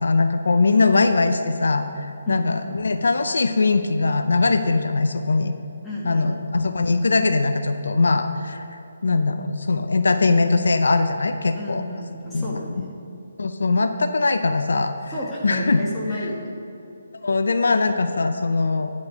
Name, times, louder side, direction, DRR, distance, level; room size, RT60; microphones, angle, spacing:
voice 1, 0.0-5.5 6.0-11.8 12.3-12.8 13.4-15.1 15.4-15.8 16.1-16.2 17.2-18.9, left 3 dB, 75° left, 8 dB, 0.6 m, -21 dB
voice 2, 5.8-6.4 11.5-13.0 15.1-16.6, left 1 dB, 5° left, -9 dB, 1.9 m, -31 dB
10.5 x 5.2 x 7.0 m, 2.7 s
hypercardioid pair, 155°, 0 cm